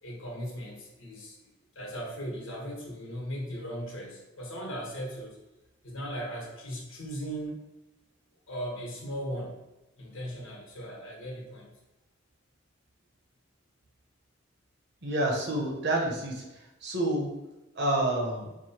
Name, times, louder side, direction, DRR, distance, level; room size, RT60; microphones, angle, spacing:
voice 1, 0.0-5.4 5.8-7.6 8.5-9.5 10.0-11.7, equal, 75° left, -2 dB, 1.3 m, -38 dB
voice 2, 15.0-16.4 16.8-17.3 17.8-18.5, right 1 dB, 55° right, 0 dB, 0.9 m, -28 dB
4.6 x 2.2 x 4.4 m, 1.0 s
head